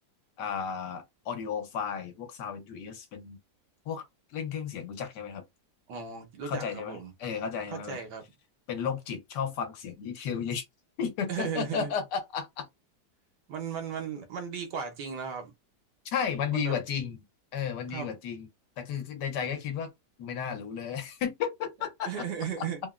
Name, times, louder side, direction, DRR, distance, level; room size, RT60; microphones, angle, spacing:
voice 1, 0.4-3.4 3.9-4.0 4.3-5.4 6.4-8.0 8.7-10.6 11.0-12.7 16.0-17.2 17.5-18.5 18.8-19.9 20.2-22.2 22.6-22.7, left 7 dB, 80° left, 1.4 m, -33 dB
voice 2, 5.9-7.1 7.7-8.2 11.3-11.9 13.5-15.5 16.5-16.8 17.9-18.1 22.1-22.8, right 7 dB, 90° right, 1.5 m, -36 dB
3.5 x 2.1 x 2.4 m
omnidirectional pair, 1.8 m